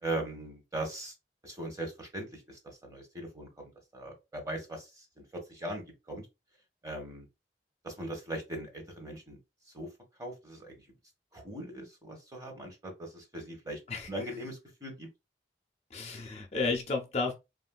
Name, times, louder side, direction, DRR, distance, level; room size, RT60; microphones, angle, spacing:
voice 1, 0.0-1.1 1.4-4.9 5.2-6.2 6.8-7.2 7.8-9.4 9.7-9.9 10.2-10.7 11.3-13.8 14.1-15.1, right 1 dB, 20° right, 0.9 m, -39 dB
voice 2, 15.9-17.3, left 4 dB, 35° left, 0.4 m, -32 dB
3.6 x 2.4 x 2.2 m
head